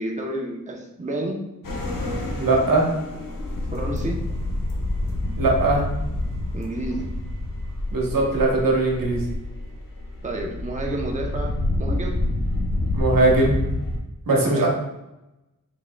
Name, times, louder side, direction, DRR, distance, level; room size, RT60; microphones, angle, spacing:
voice 1, 0.0-1.4 3.7-4.2 6.5-7.0 10.2-12.2 14.4-14.7, right 1 dB, 20° right, 0 dB, 0.7 m, -30 dB
sound 1, 1.6-14.0, left 1 dB, 80° left, 0.9 m, -28 dB
voice 2, 2.4-2.8 5.4-5.8 7.9-9.3 12.9-13.6 14.3-14.7, right 2 dB, 85° right, -1 dB, 1.1 m, -20 dB
5.5 x 3.7 x 2.2 m, 0.94 s
wide cardioid pair, 100°, 33 cm